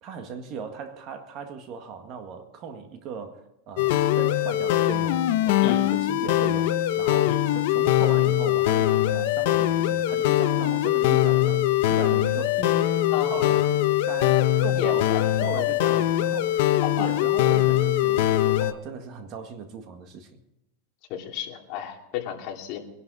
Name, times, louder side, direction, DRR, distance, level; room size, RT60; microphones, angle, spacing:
voice 1, 0.0-12.9 13.3-13.7 14.1-15.1 15.4-16.7 17.0-20.4, right 6 dB, 35° right, 1.7 m, -38 dB
sound 1, 3.8-18.7, left 13 dB, 65° left, 1.0 m, -22 dB
voice 2, 5.6-5.9 7.2-7.4 13.1-13.4 14.8-15.2 15.5-15.6 15.9-16.0 16.8-17.1 21.1-22.8, left 9 dB, 45° left, 2.6 m, -33 dB
23.5 x 11.0 x 4.1 m
supercardioid pair, 165°, 0 cm